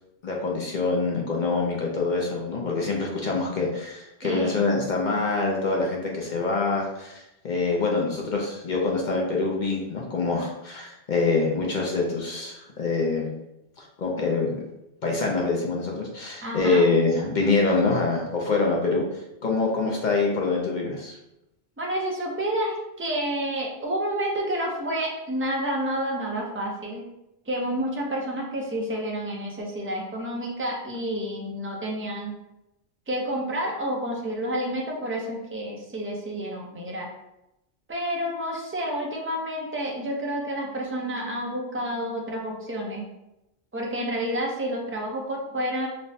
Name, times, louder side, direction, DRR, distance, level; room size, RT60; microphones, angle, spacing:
voice 1, 0.2-13.3 13.8-14.6 15.0-19.0 19.4-21.2, left 3 dB, 50° left, -1 dB, 0.6 m, -25 dB
voice 2, 4.2-4.7 16.4-16.8 21.8-27.0 27.5-32.3 33.1-37.1 37.9-43.1 43.7-45.9, right 1 dB, 15° right, -1 dB, 0.4 m, -29 dB
5.2 x 2.1 x 2.7 m, 0.89 s
omnidirectional pair, 1.2 m